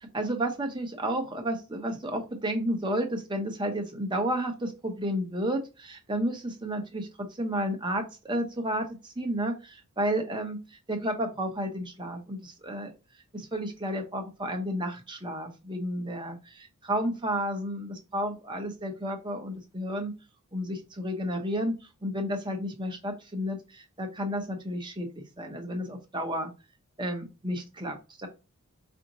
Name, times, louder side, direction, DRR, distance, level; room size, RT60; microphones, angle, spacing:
voice 1, 0.0-7.1 7.4-12.9 13.3-20.1 20.5-21.8 22.0-25.1 25.4-26.5 27.0-28.3, equal, 20° right, 3 dB, 0.8 m, -32 dB
4.9 x 2.6 x 2.9 m, 0.28 s
head